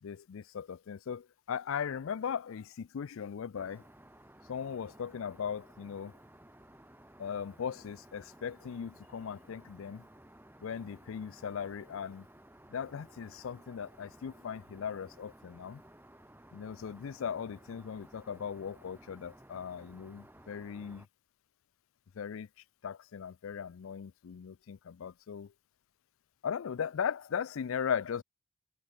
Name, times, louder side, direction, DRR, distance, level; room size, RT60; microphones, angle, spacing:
voice 1, 0.0-3.8 4.5-6.1 7.2-10.1 10.6-12.2 12.7-15.8 16.5-21.1 22.2-22.5 22.8-25.5 26.4-28.2, left 7 dB, 70° left, 0.4 m, -38 dB
Aircraft, 3.6-21.1, right 1 dB, 10° right, 4.2 m, -57 dB
head